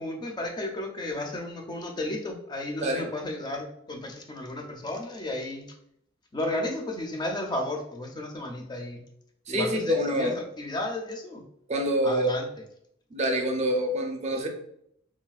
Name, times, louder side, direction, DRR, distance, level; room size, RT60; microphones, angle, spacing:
voice 1, 0.0-5.7 6.3-9.0 9.5-11.4 12.0-12.5, left 1 dB, 20° left, 2 dB, 0.4 m, -33 dB
voice 2, 9.5-10.4 11.7-12.3 13.1-14.5, equal, 35° right, 2 dB, 0.5 m, -26 dB
3.2 x 2.2 x 2.3 m, 0.72 s
head